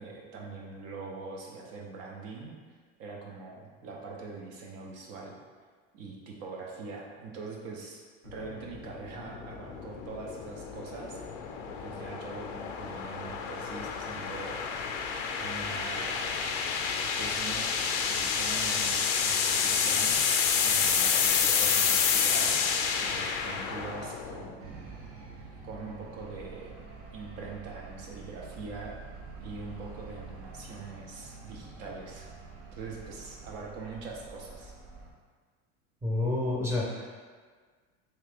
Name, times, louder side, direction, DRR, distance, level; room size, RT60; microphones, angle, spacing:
voice 1, 0.0-2.5 3.0-5.4 5.9-14.6 15.4-16.4 17.2-17.7 18.0-20.2 20.6-22.6 23.0-25.0 25.6-26.9 27.1-29.0 29.4-32.3 32.7-34.7, right 4 dB, 55° right, -1 dB, 0.8 m, -43 dB
sound 1, 8.3-24.5, left 6 dB, 65° left, 0.5 m, -29 dB
sound 2, 24.6-35.1, right 4 dB, 85° right, 0.7 m, -47 dB
voice 2, 36.0-37.0, left 2 dB, 10° right, -4 dB, 0.7 m, -29 dB
3.1 x 2.8 x 3.4 m, 1.6 s
supercardioid pair, 120°, 29 cm